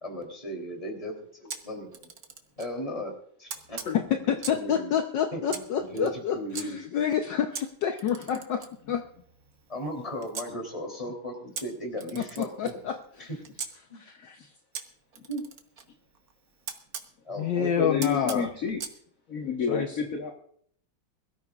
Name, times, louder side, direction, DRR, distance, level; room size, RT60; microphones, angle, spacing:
voice 1, 0.0-2.1 2.6-3.1 3.4-3.8 4.1-4.2 4.5-4.9 5.3-6.8 8.3-8.4 9.7-12.8 13.2-13.3 13.9-14.0 15.3-15.4 17.2-17.7, equal, 15° left, 3 dB, 3.2 m, -36 dB
Camera, 1.5-2.7 3.5-4.7 5.5-6.7 7.5-10.5 11.5-13.7 14.7-17.1 18.0-19.0, right 6 dB, 50° right, 1.5 m, -41 dB
voice 2, 3.9-8.6 8.9-9.0 12.1-13.3 13.9-14.5 17.4-18.5 19.7-19.9, left 8 dB, 65° left, 4 dB, 1.5 m, -28 dB
voice 3, 17.5-18.8 19.3-20.3, left 5 dB, 45° left, 2 dB, 1.6 m, -30 dB
22.0 x 13.5 x 2.4 m, 0.62 s
omnidirectional pair, 2.2 m